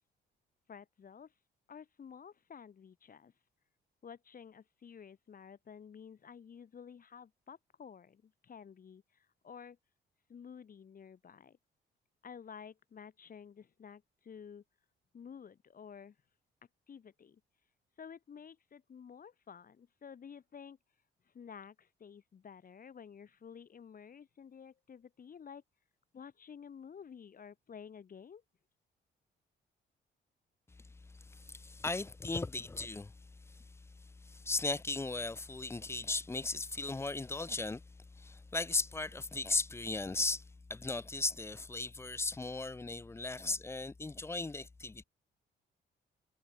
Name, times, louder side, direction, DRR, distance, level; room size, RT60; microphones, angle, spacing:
voice 1, 0.7-1.3 1.7-3.3 4.0-9.8 10.3-11.6 12.2-14.6 15.1-16.2 16.9-17.4 18.0-20.8 21.3-25.6 26.1-28.4, left 7 dB, 45° left, 2.2 m, -52 dB
voice 2, 31.3-33.1 33.5-33.6 34.2-37.8 38.2-40.4 40.7-45.0, left 3 dB, 15° left, 0.4 m, -36 dB
cardioid pair, 90°, 20 cm